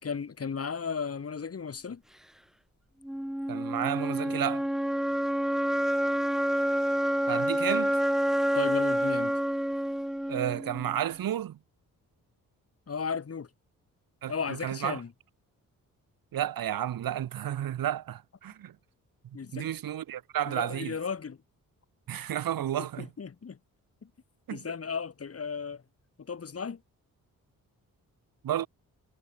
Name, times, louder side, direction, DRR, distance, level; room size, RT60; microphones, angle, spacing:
voice 1, 0.0-2.0 8.5-9.3 12.9-13.5 14.3-15.1 19.3-19.7 20.5-21.4 22.8-23.6 24.0-24.1 24.5-25.8 26.2-26.8, left 6 dB, 45° left, 3.9 m, -35 dB
sound 1, 3.0-11.0, equal, ahead, 0.4 m, -28 dB
voice 2, 3.5-4.7 7.3-8.0 10.3-11.6 14.2-15.0 16.3-18.7 19.5-20.9 22.1-23.1 24.5-24.6 28.4-28.7, right 11 dB, 85° right, 3.0 m, -32 dB
cardioid pair, 100°, 34 cm